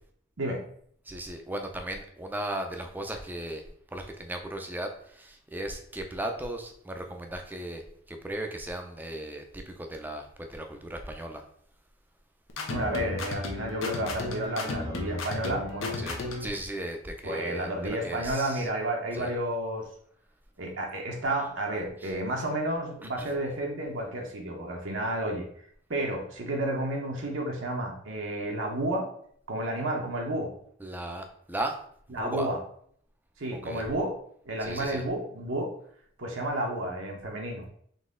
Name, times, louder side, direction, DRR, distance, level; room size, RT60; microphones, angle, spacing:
voice 1, 1.1-3.6 3.9-7.8 8.1-11.4 16.0-18.7 19.1-19.3 22.0-22.1 23.2-23.3 30.8-31.7 32.2-32.5 33.6-33.8 34.6-35.0, right 1 dB, 10° right, 4 dB, 0.5 m, -36 dB
sound 1, 12.5-16.6, left 2 dB, 80° left, 0.8 m, -34 dB
voice 2, 12.7-16.0 17.2-19.9 20.6-25.5 25.9-29.1 29.5-30.5 32.1-32.6 33.4-34.2 34.4-35.7 36.2-37.7, right 1 dB, 70° right, 0 dB, 0.9 m, -31 dB
4.0 x 3.1 x 3.7 m, 0.63 s
head